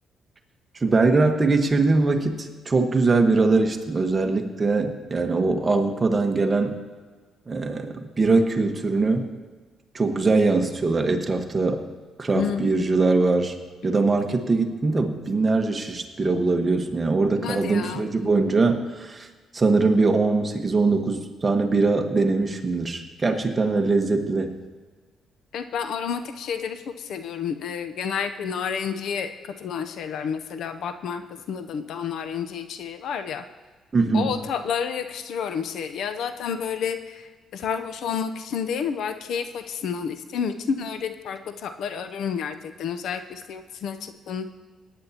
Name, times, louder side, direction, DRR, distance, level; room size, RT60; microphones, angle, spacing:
voice 1, 0.8-6.8 7.5-9.3 9.9-11.8 12.2-13.5 13.8-19.3 19.5-24.5 33.9-34.3, right 3 dB, 25° right, 4 dB, 1.4 m, -22 dB
voice 2, 12.3-12.8 17.4-18.1 25.5-33.4 34.1-44.5, left 7 dB, 75° left, 8 dB, 0.7 m, -30 dB
18.0 x 9.6 x 2.9 m, 1.4 s
cardioid pair, 90°, 0 cm